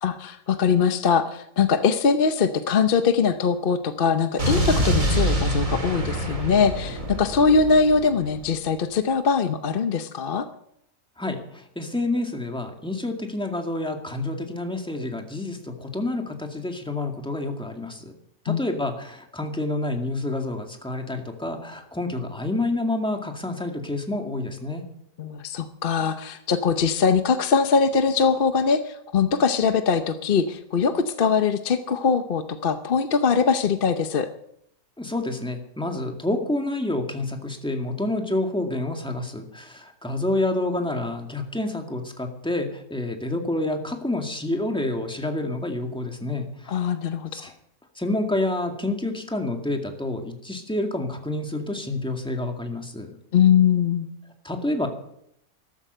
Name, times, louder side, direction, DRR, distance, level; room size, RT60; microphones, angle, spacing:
voice 1, 0.0-10.5 18.5-18.6 25.2-34.3 46.7-47.5 53.3-54.1, left 5 dB, 45° left, 9 dB, 0.9 m, -22 dB
Explosion, 4.4-8.4, right 1 dB, 60° right, 4.0 m, -25 dB
voice 2, 11.2-18.1 18.4-24.8 35.0-46.8 47.3-47.5 48.0-53.1 54.4-54.9, left 2 dB, 5° left, 3 dB, 2.0 m, -28 dB
14.0 x 13.0 x 6.7 m, 0.74 s
omnidirectional pair, 1.5 m